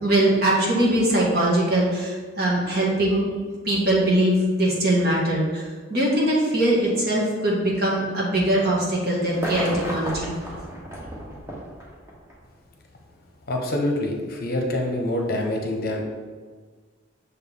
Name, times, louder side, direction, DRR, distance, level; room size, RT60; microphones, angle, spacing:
voice 1, 0.0-3.3 3.6-10.3, right 1 dB, 50° right, -4 dB, 1.5 m, -21 dB
sound 1, 9.3-12.4 13.5-13.6, right 1 dB, 15° right, 1.0 m, -33 dB
voice 2, 13.5-16.0, left 1 dB, 50° left, 1 dB, 0.8 m, -25 dB
6.6 x 4.4 x 3.6 m, 1.5 s
head